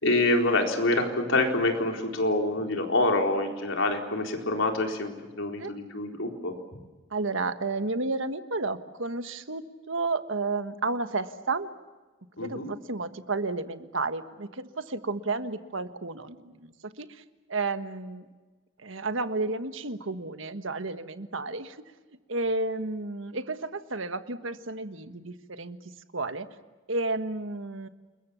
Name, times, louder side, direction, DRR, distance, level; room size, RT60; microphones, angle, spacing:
voice 1, 0.0-6.6 12.4-12.7, left 2 dB, 75° left, 2 dB, 4.2 m, -26 dB
voice 2, 7.1-11.7 12.4-16.7 17.0-17.2 17.5-18.2 18.8-21.8 22.3-25.8 26.1-26.5 26.9-27.9, right 3 dB, 75° right, 10 dB, 1.5 m, -32 dB
29.0 x 22.0 x 7.1 m, 1.2 s
head